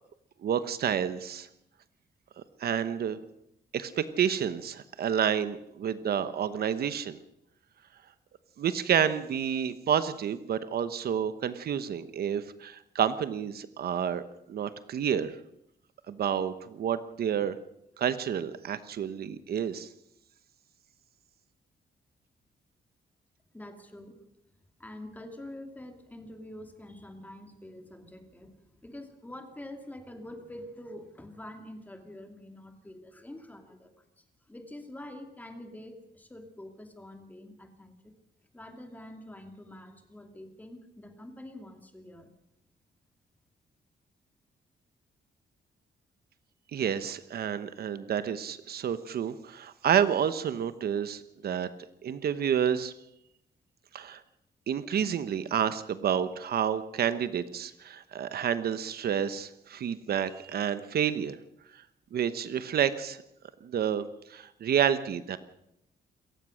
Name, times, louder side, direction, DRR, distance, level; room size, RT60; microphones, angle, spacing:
voice 1, 0.4-1.5 2.6-3.2 3.7-7.2 8.6-14.2 14.5-15.4 16.1-17.6 18.0-19.9 46.7-51.7 52.0-52.9 53.9-54.2 54.7-61.4 61.7-61.8 62.1-63.2 63.6-65.4, right 8 dB, 65° right, 12 dB, 1.1 m, -29 dB
voice 2, 23.5-24.2 24.8-38.1 38.5-42.3, left 1 dB, 10° left, 5 dB, 2.5 m, -46 dB
27.0 x 15.0 x 6.4 m, 0.81 s
wide cardioid pair, 165°, 17 cm